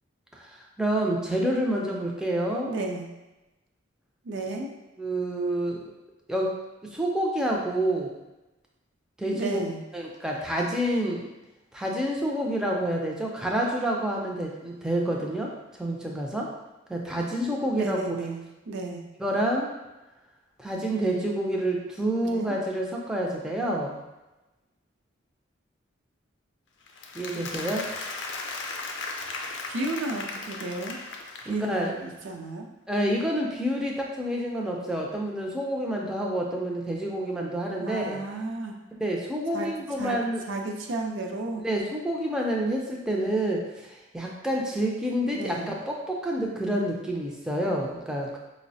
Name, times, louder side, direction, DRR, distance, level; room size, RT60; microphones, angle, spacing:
voice 1, 0.4-2.7 5.0-5.9 6.3-6.5 6.9-8.1 9.2-9.6 9.9-11.2 11.7-15.5 15.8-16.5 16.9-18.2 19.2-19.7 20.6-24.0 27.1-27.8 31.5-31.9 32.9-38.2 39.0-40.4 41.6-48.4, right 1 dB, 5° right, -2 dB, 0.3 m, -28 dB
voice 2, 2.7-3.1 4.2-4.7 9.3-9.8 17.7-19.0 22.2-22.6 29.7-31.0 31.4-32.7 37.8-38.7 39.5-39.7 40.0-40.2 40.5-41.6 45.3-45.7, right 2 dB, 70° right, 2 dB, 0.5 m, -33 dB
Applause, 26.9-31.9, left 3 dB, 65° left, 0.4 m, -36 dB
4.5 x 2.0 x 2.6 m, 1.0 s
head